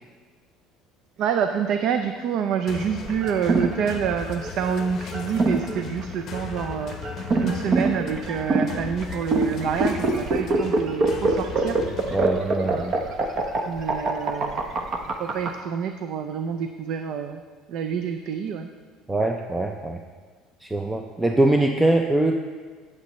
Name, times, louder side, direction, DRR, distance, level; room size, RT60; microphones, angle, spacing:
voice 1, 1.2-7.0 7.4-11.8 12.6-12.9 13.6-14.7 15.2-17.4 17.7-18.7, right 7 dB, 60° right, 7 dB, 0.5 m, -27 dB
sound 1, 2.7-12.3, left 7 dB, 45° left, 0.7 m, -38 dB
sound 2, 3.0-15.5, right 3 dB, 40° right, 1.0 m, -25 dB
voice 2, 12.1-12.9 19.1-20.0 20.6-22.3, right 1 dB, 10° right, 4 dB, 0.5 m, -22 dB
16.0 x 7.6 x 3.1 m, 1.5 s
cardioid pair, 130°, 0 cm